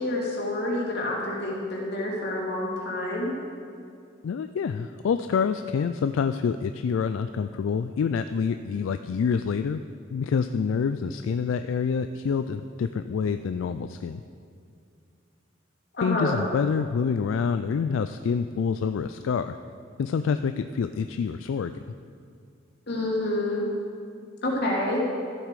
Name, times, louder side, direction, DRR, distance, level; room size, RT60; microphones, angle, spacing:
voice 1, 0.0-3.3 15.9-16.4 22.9-23.7 24.4-25.0, left 1 dB, 60° left, -3 dB, 2.5 m, -28 dB
voice 2, 4.2-9.8 10.1-14.2 16.0-19.6 20.0-21.7, left 6 dB, 80° left, 9 dB, 0.3 m, -27 dB
14.0 x 7.5 x 4.8 m, 2.4 s
head